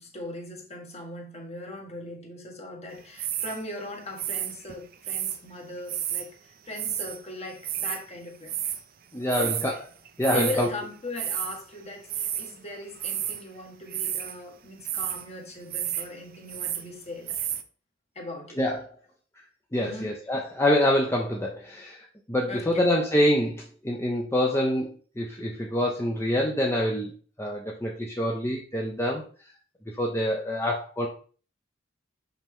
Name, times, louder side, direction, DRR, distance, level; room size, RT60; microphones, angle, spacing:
voice 1, 0.0-8.5 9.3-9.6 10.3-17.4 18.1-18.6 19.8-20.1 22.5-22.9, left 2 dB, 35° left, 1.6 m, -39 dB
sound 1, 3.2-3.6 4.2-5.4 5.9-6.3 6.7-7.2 7.4-8.0 8.5-8.8 9.3-9.8 10.1-10.7 11.2-11.6 12.1-12.5 12.9-13.4 13.9-14.4 14.8-15.2 15.7-16.1 16.3-16.9 17.3-17.6, right 11 dB, 50° right, 0.6 m, -31 dB
voice 2, 9.1-9.8 10.2-10.7 18.6-18.8 19.7-27.1 27.4-29.2 30.0-31.1, equal, 15° left, 0.8 m, -26 dB
5.8 x 5.7 x 3.6 m
head